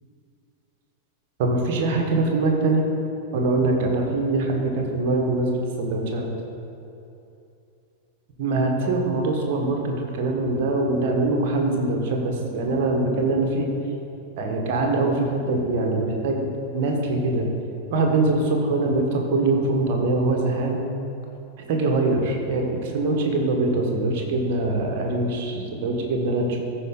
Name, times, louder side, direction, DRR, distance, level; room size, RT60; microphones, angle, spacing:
voice 1, 1.4-2.9 3.3-6.3 8.4-13.7 14.4-16.4 16.7-17.5 17.9-20.8 21.7-26.6, right 2 dB, 50° right, 1 dB, 1.3 m, -23 dB
14.0 x 4.8 x 3.8 m, 2.8 s
figure-of-eight pair, 90°, 0 cm